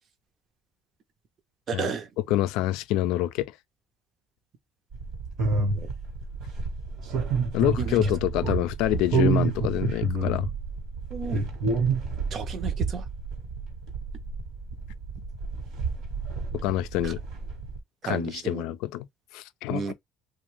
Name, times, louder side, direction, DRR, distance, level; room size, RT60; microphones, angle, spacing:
voice 1, 1.7-2.1 5.7-5.9 7.8-8.0 11.1-11.4 12.3-13.0 17.0-17.1 18.0-18.6 19.7-19.9, right 6 dB, 50° right, 0.6 m, -32 dB
voice 2, 2.3-3.5 7.5-10.5 16.6-17.2 18.0-19.1 19.3-19.8, left 15 dB, 80° left, 0.3 m, -26 dB
sound 1, 4.9-17.8, right 4 dB, 65° right, 1.2 m, -29 dB
2.5 x 2.2 x 3.1 m
supercardioid pair, 100°, 0 cm